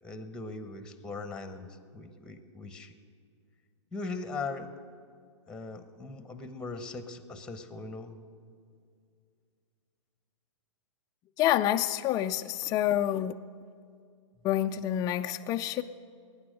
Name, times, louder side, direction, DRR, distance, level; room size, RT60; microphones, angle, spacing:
voice 1, 0.0-2.9 3.9-4.7 5.5-8.2, left 3 dB, 5° left, 9 dB, 1.0 m, -40 dB
voice 2, 11.4-13.3 14.4-15.8, left 12 dB, 20° left, 6 dB, 0.4 m, -27 dB
21.0 x 9.8 x 6.4 m, 2.2 s
hypercardioid pair, 120°, 16 cm